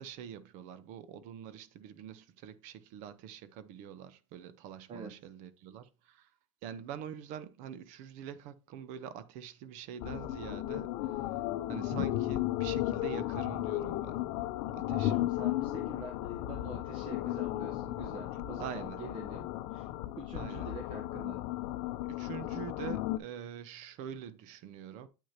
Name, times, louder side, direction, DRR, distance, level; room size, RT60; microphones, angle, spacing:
voice 1, 0.0-6.3 6.6-11.2 11.7-14.2 14.7-15.1 18.6-19.0 20.3-20.7 22.0-25.1, right 9 dB, 50° right, 0.7 m, -45 dB
sound 1, 10.0-23.2, left 15 dB, 55° left, 0.6 m, -35 dB
voice 2, 11.7-12.1 14.9-19.9 20.2-21.4, right 4 dB, 35° right, 1.0 m, -45 dB
8.4 x 6.3 x 2.8 m
supercardioid pair, 135°, 16 cm